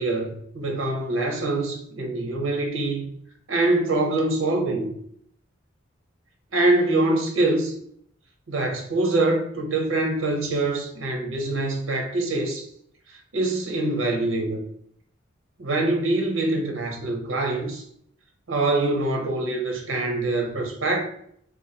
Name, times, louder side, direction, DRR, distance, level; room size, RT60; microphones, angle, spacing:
voice 1, 0.0-3.1 3.5-4.9 6.5-7.7 8.5-12.7 13.1-14.6 15.6-17.8 18.5-21.0, right 2 dB, 85° right, 0.9 m, -24 dB
3.1 x 2.5 x 4.0 m
head